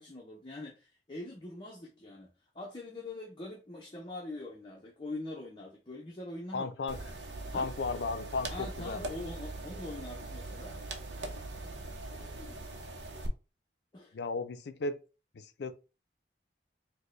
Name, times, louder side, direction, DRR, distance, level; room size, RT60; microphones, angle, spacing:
voice 1, 0.0-2.3 2.5-6.7 7.5-7.7 8.5-10.8 12.1-12.6 13.9-14.2, left 2 dB, 30° left, 0.6 m, -43 dB
voice 2, 6.5-7.0 7.5-9.2 14.1-15.0 15.3-15.7, left 3 dB, 70° left, 0.4 m, -35 dB
sound 1, 6.9-13.3, right 2 dB, 80° right, 0.7 m, -41 dB
4.3 x 2.1 x 3.1 m
head